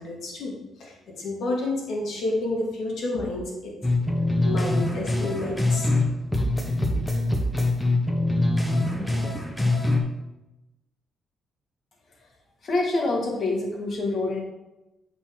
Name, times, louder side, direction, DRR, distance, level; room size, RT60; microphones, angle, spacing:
voice 1, 0.0-3.9 4.4-5.9, left 2 dB, 70° left, -3 dB, 2.3 m, -30 dB
sound 1, 3.8-6.1 6.3-10.0, left 2 dB, 10° left, 1.1 m, -24 dB
voice 2, 12.6-14.4, left 2 dB, 50° left, 0 dB, 1.8 m, -26 dB
7.9 x 4.5 x 3.7 m, 0.97 s
cardioid pair, 90°, 0 cm